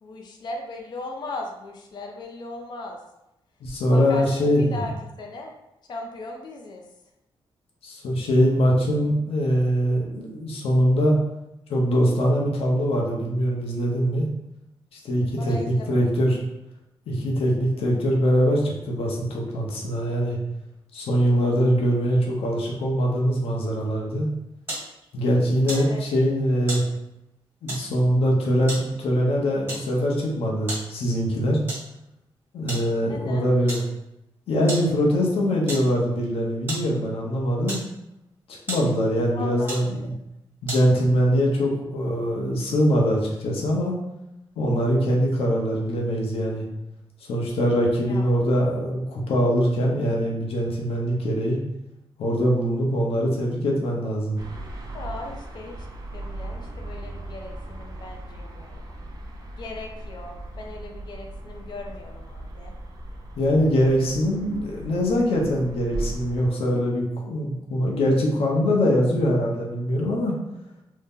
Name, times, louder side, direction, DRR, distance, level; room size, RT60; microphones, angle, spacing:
voice 1, 0.0-3.0 3.9-4.9 5.2-5.5 5.9-6.8 15.4-16.1 25.7-26.0 33.0-33.4 39.3-39.8 48.0-48.3 54.9-55.9 56.1-58.8 59.6-62.7, left 2 dB, 50° left, 1 dB, 0.4 m, -37 dB
voice 2, 3.6-4.8 7.8-11.2 11.7-14.3 14.9-16.4 17.1-20.4 20.9-24.3 25.1-26.8 27.6-31.6 32.5-33.8 34.5-37.8 38.7-40.1 40.6-43.9 44.6-46.6 47.3-51.6 52.2-54.4 63.4-70.3, equal, 85° left, -1 dB, 0.7 m, -22 dB
sound 1, 24.2-41.2, right 1 dB, 20° right, 1.4 m, -39 dB
sound 2, 54.4-66.5, right 2 dB, 40° right, 0.4 m, -38 dB
2.7 x 2.0 x 3.5 m, 0.88 s
wide cardioid pair, 145°, 10 cm